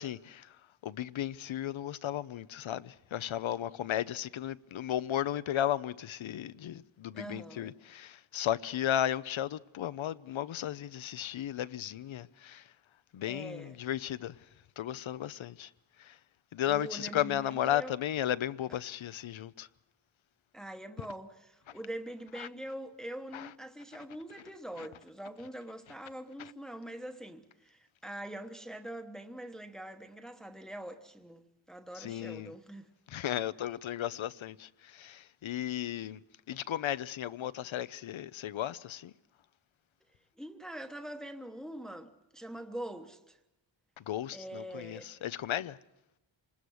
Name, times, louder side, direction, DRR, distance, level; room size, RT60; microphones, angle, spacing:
voice 1, 0.0-12.7 13.1-14.5 14.8-15.7 16.0-16.2 16.5-19.7 22.3-22.5 23.3-23.5 24.8-24.9 26.4-26.5 31.9-32.5 33.1-36.2 36.5-39.1 44.0-45.8, left 11 dB, 90° left, 0.8 m, -35 dB
voice 2, 7.1-7.7 13.2-13.8 16.7-17.4 17.7-17.9 20.5-32.9 40.4-43.4 44.3-45.1, right 1 dB, ahead, 1.1 m, -43 dB
26.5 x 20.5 x 6.4 m
wide cardioid pair, 150°, 46 cm